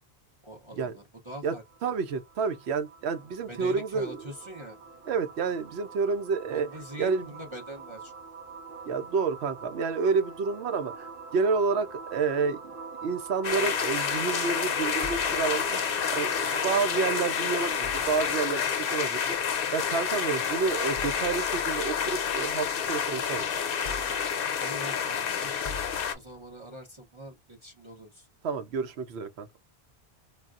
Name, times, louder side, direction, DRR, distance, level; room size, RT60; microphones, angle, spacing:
voice 1, 0.4-2.0 3.5-4.8 6.5-8.1 24.6-28.3, equal, 30° right, 0.7 m, -44 dB
sound 1, 1.3-18.0, right 5 dB, 55° right, 0.9 m, -44 dB
voice 2, 1.8-4.2 5.1-6.7 7.0-7.3 8.9-12.7 13.0-18.6 18.9-23.5 28.4-29.5, right 5 dB, 80° right, 0.9 m, -29 dB
sound 2, 13.4-26.2, left 7 dB, 65° left, 0.8 m, -29 dB
sound 3, 15.0-15.8 17.1-17.2 17.7-18.6 19.7-19.9 20.4-20.5 20.9-21.7 22.2-23.3 23.8-24.6 25.6-26.5, left 4 dB, 45° left, 0.5 m, -44 dB
3.4 x 2.3 x 2.4 m
omnidirectional pair, 1.1 m